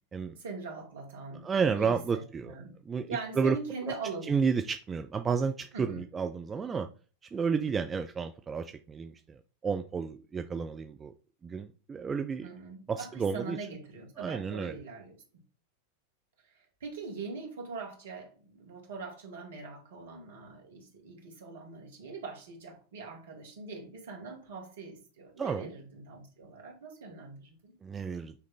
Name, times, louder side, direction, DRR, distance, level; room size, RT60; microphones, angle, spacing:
voice 1, 0.4-2.8 3.1-4.4 5.7-6.0 12.4-15.4 16.8-27.7, right 4 dB, 60° right, 2.1 m, -42 dB
voice 2, 1.4-2.5 2.9-3.6 4.3-6.9 7.3-11.1 11.4-12.5 12.9-13.6 14.2-14.7 25.4-25.7 27.8-28.3, right 5 dB, 20° right, 0.5 m, -31 dB
8.1 x 3.2 x 3.9 m
figure-of-eight pair, 90°, 0 cm